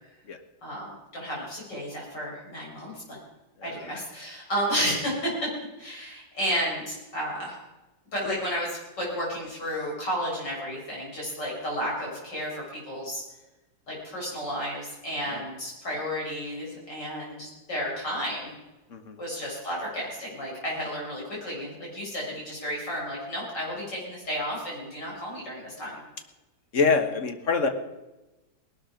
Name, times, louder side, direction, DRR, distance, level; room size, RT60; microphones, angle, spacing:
voice 1, 0.6-3.2 3.6-5.3 5.8-7.6 8.1-13.2 13.9-18.5 19.2-26.0, equal, 65° left, -4 dB, 8.0 m, -32 dB
voice 2, 26.7-27.7, left 5 dB, 45° left, 7 dB, 1.6 m, -24 dB
19.0 x 12.0 x 5.1 m, 1.0 s
omnidirectional pair, 2.0 m